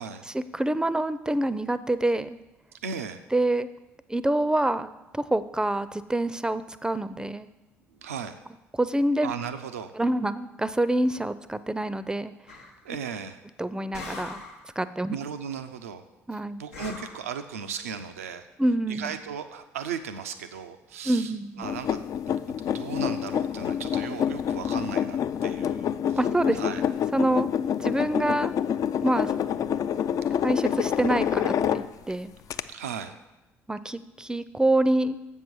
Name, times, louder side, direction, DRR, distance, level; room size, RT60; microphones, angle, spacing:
voice 1, 0.3-2.4 3.3-3.7 4.1-7.5 8.8-9.3 10.0-12.3 13.6-14.4 14.8-15.2 16.3-16.6 18.6-19.1 21.1-21.7 26.2-26.6 27.1-27.5 27.8-28.5 29.0-29.3 30.4-32.3 33.7-35.2, right 1 dB, 10° right, 14 dB, 0.5 m, -26 dB
voice 2, 2.8-3.2 7.9-8.4 9.2-9.9 12.8-13.4 15.1-16.0 16.3-18.5 18.9-26.2 26.5-26.8 32.7-33.2, right 7 dB, 90° right, 9 dB, 0.4 m, -36 dB
sound 1, 12.5-12.8 13.9-14.7 16.7-17.3, left 3 dB, 90° left, 0.8 m, -40 dB
sound 2, 21.6-32.1 32.5-32.6, left 9 dB, 50° left, 0.4 m, -27 dB
7.5 x 5.4 x 6.1 m, 1.0 s
hypercardioid pair, 50°, 7 cm